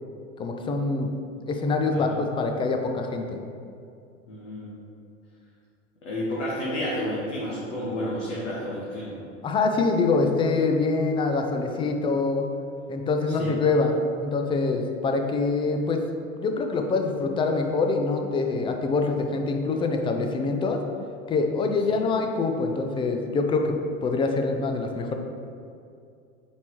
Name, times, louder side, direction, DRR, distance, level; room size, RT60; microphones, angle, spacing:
voice 1, 0.4-1.1 1.5-3.4 9.4-12.5 12.9-16.0 16.4-20.8 21.3-23.7 24.0-25.1, left 3 dB, 15° left, 4 dB, 0.4 m, -25 dB
voice 2, 4.3-4.7 6.0-9.1 13.3-13.5 21.9-22.0, left 1 dB, 65° left, -6 dB, 1.5 m, -31 dB
8.2 x 4.7 x 3.0 m, 2.4 s
figure-of-eight pair, 85°, 40 cm